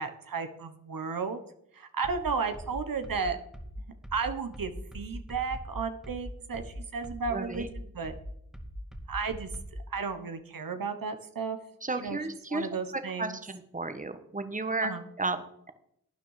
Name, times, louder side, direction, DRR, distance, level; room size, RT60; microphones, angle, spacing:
voice 1, 0.0-1.4 1.7-3.4 4.1-8.1 9.1-9.5 9.9-11.6 12.0-12.2 12.5-13.4 14.8-15.0, right 5 dB, 70° right, 8 dB, 1.3 m, -33 dB
sound 1, 2.0-9.9, equal, ahead, 2.2 m, -41 dB
voice 2, 7.3-7.7 11.8-12.7 12.9-15.7, right 3 dB, 20° right, 10 dB, 1.4 m, -33 dB
12.0 x 9.1 x 5.0 m, 0.71 s
cardioid pair, 45°, 35 cm